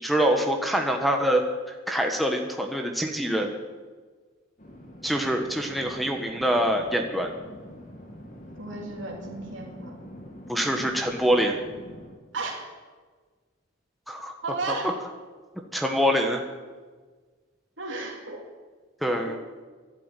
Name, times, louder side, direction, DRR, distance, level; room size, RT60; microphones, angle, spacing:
voice 1, 0.0-1.4 1.9-3.6 5.0-7.3 10.5-11.6 14.1-14.3 14.8-14.9 15.7-16.4 19.0-19.4, equal, ahead, 4 dB, 1.2 m, -25 dB
sound 1, 4.6-12.1, equal, 40° left, 2.3 m, -44 dB
voice 2, 8.6-10.0 12.3-12.7 14.4-14.9 17.8-18.4 19.3-19.4, right 3 dB, 65° right, -2 dB, 2.7 m, -34 dB
13.0 x 11.5 x 9.1 m, 1.4 s
head